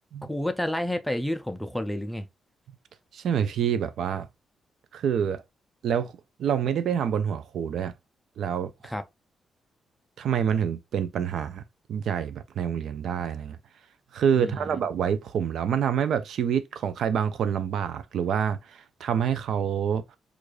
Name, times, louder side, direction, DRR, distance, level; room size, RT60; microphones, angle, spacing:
voice 1, 0.3-2.3 8.8-9.0 14.4-14.8, left 1 dB, 5° left, 0.4 m, -30 dB
voice 2, 3.1-4.3 4.9-5.4 5.8-6.1 6.4-7.9 8.4-8.9 10.2-11.6 11.9-13.6 14.1-20.2, right 8 dB, 75° right, 0.4 m, -27 dB
4.7 x 2.5 x 2.3 m
cardioid pair, 125°, 0 cm